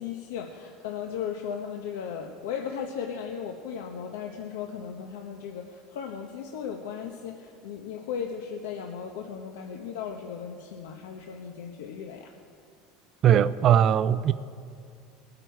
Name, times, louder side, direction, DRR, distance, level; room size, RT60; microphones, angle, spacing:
voice 1, 0.0-12.3, left 7 dB, 90° left, 0.9 m, -36 dB
voice 2, 13.2-14.3, right 9 dB, 40° right, 0.4 m, -20 dB
20.5 x 9.0 x 4.6 m
supercardioid pair, 135°, 0 cm